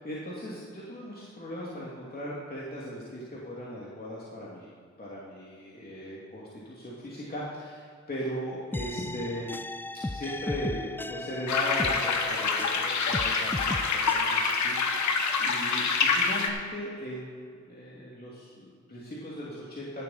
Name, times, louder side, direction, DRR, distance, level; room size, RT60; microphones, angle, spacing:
voice 1, 0.0-4.7 5.0-9.6 9.9-15.1 15.4-20.0, equal, 30° left, -7 dB, 2.7 m, -38 dB
sound 1, 8.7-12.8 13.1-14.2, left 2 dB, 5° left, 0.4 m, -36 dB
sound 2, 11.5-16.5, left 5 dB, 75° left, 1.2 m, -26 dB
16.0 x 7.6 x 4.3 m, 2.2 s
cardioid pair, 55°, 29 cm